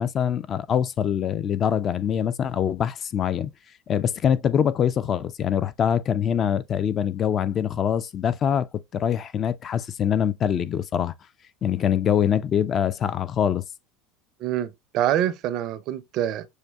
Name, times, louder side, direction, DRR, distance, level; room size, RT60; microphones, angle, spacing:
voice 1, 0.0-3.5 3.9-8.7 8.9-11.1 11.6-13.6, left 9 dB, 40° left, 0.4 m, -24 dB
voice 2, 14.4-16.5, right 11 dB, 55° right, 0.4 m, -26 dB
6.4 x 2.7 x 2.3 m
hypercardioid pair, 85°, 0 cm